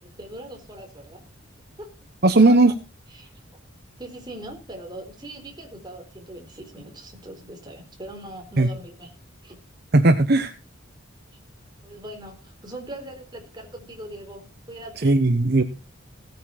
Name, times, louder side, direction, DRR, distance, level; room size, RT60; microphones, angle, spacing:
voice 1, 0.0-1.2 1.8-1.9 2.4-2.8 3.1-3.3 4.0-9.2 9.4-9.6 11.8-15.2, right 1 dB, 20° right, 3 dB, 4.2 m, -40 dB
voice 2, 2.2-2.7 8.6-8.7 9.9-10.5 15.0-15.6, right 2 dB, 50° right, 9 dB, 1.0 m, -16 dB
17.0 x 9.2 x 4.2 m, 0.31 s
head